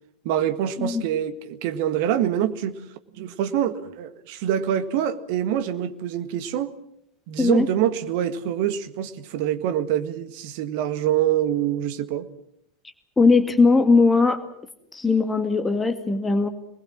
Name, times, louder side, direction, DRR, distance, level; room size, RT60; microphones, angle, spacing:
voice 1, 0.2-2.8 3.2-6.7 7.3-12.3, right 10 dB, 55° right, 1.7 m, -25 dB
voice 2, 13.2-14.4 14.9-16.5, left 4 dB, 15° left, 2.0 m, -19 dB
26.5 x 20.5 x 7.5 m
figure-of-eight pair, 80°, 0 cm